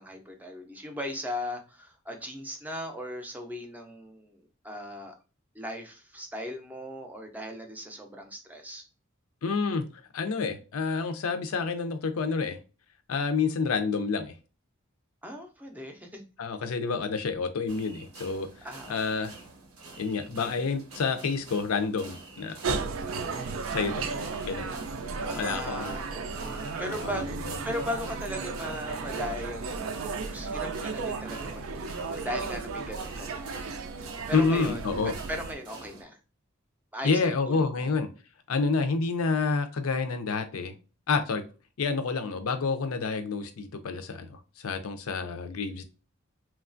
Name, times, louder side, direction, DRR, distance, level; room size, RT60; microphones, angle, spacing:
voice 1, 0.0-5.1 5.5-8.8 15.2-16.2 18.6-19.3 22.7-23.0 25.3-29.8 30.1-33.6 34.3-36.2 36.9-37.9, left 1 dB, 10° right, 0.4 m, -38 dB
voice 2, 9.4-9.9 10.1-12.6 13.1-14.3 16.4-18.5 18.9-19.4 20.0-22.9 23.7-24.1 24.4-24.7 25.1-25.9 26.9-27.2 34.3-35.1 37.0-38.1 38.5-40.7 41.1-41.4 41.8-45.8, left 4 dB, 85° left, 0.5 m, -29 dB
sound 1, 17.7-36.0, right 3 dB, 90° right, 0.8 m, -48 dB
sound 2, 22.6-35.5, right 4 dB, 70° right, 0.4 m, -34 dB
3.1 x 2.3 x 2.4 m
head